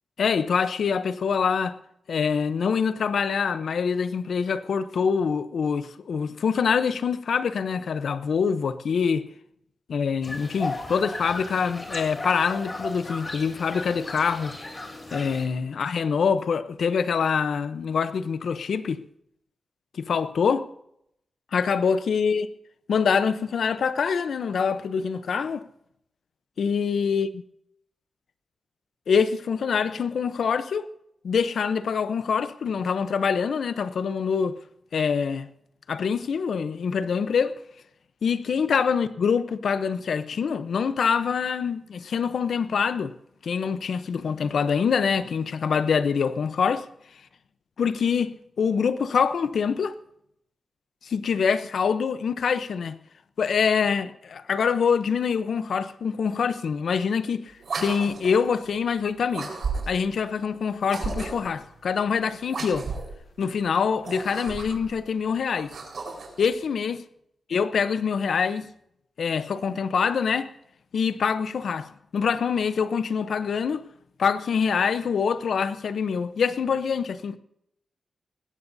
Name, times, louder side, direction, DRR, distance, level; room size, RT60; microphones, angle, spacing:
voice 1, 0.2-1.8 2.1-9.3 9.9-14.5 15.1-19.0 19.9-20.7 21.5-22.5 22.9-25.6 26.6-27.3 29.1-30.9 31.2-34.6 34.9-35.5 35.9-37.5 38.2-43.1 43.4-46.9 47.8-50.0 51.0-53.0 53.4-57.4 57.8-59.5 59.9-62.9 63.4-65.8 66.4-67.0 67.5-68.7 69.2-70.5 70.9-73.9 74.2-77.4, left 6 dB, 75° left, 0.7 m, -25 dB
sound 1, 10.2-15.5, left 2 dB, 30° left, 3.2 m, -36 dB
sound 2, 57.6-58.5 59.3-60.1 60.8-61.6 62.5-63.2 63.9-64.9 65.5-66.4, right 4 dB, 65° right, 4.4 m, -33 dB
19.5 x 16.0 x 2.7 m
wide cardioid pair, 95°, 0 cm